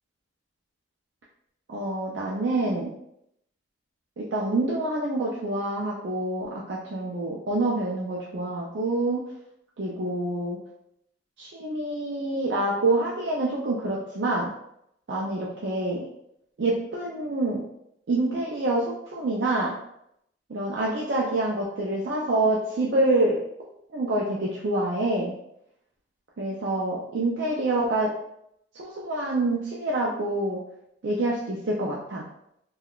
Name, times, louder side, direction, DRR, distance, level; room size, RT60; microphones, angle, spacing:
voice 1, 1.7-2.9 4.2-9.2 9.8-10.6 11.4-14.5 15.1-16.1 16.6-17.6 18.1-19.8 20.5-23.4 23.9-25.3 26.4-28.1 28.7-30.6 31.0-32.2, right 2 dB, 65° right, -4 dB, 0.4 m, -26 dB
3.5 x 2.3 x 2.3 m, 0.77 s
head